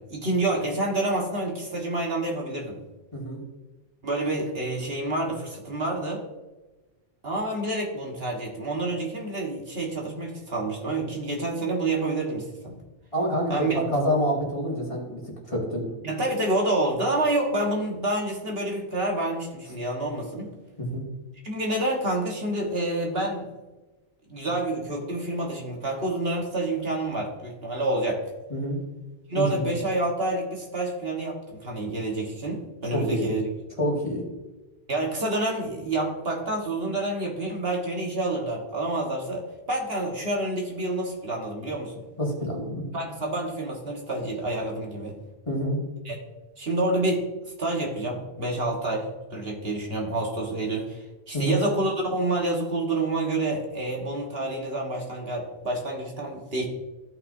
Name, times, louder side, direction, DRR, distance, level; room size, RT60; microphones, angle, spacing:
voice 1, 0.0-2.8 4.0-6.2 7.2-12.8 13.5-13.8 16.0-20.5 21.4-23.5 24.3-28.2 29.3-33.5 34.9-42.0 42.9-45.2 46.0-46.2 46.6-47.3 47.6-56.6, right 2 dB, 60° right, 0 dB, 1.7 m, -28 dB
voice 2, 13.1-15.8 20.8-21.0 28.5-28.8 29.3-29.7 32.9-33.3 33.8-34.3 42.2-42.8 45.5-45.8 51.3-51.6, equal, 30° left, -3 dB, 2.1 m, -27 dB
14.5 x 6.0 x 2.7 m, 1.1 s
omnidirectional pair, 1.2 m